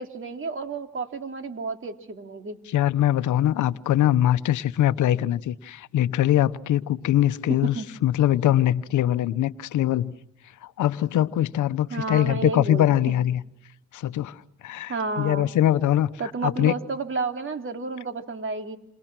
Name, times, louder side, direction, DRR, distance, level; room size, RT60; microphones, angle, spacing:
voice 1, 0.0-2.6 7.7-7.9 11.9-12.9 14.9-15.5 16.2-18.8, right 4 dB, 40° right, 3.0 m, -31 dB
voice 2, 2.7-7.8 8.0-10.1 10.6-13.4 13.9-16.1 16.4-16.7, left 12 dB, 75° left, 1.0 m, -22 dB
29.0 x 27.5 x 6.1 m
cardioid pair, 90°, 30 cm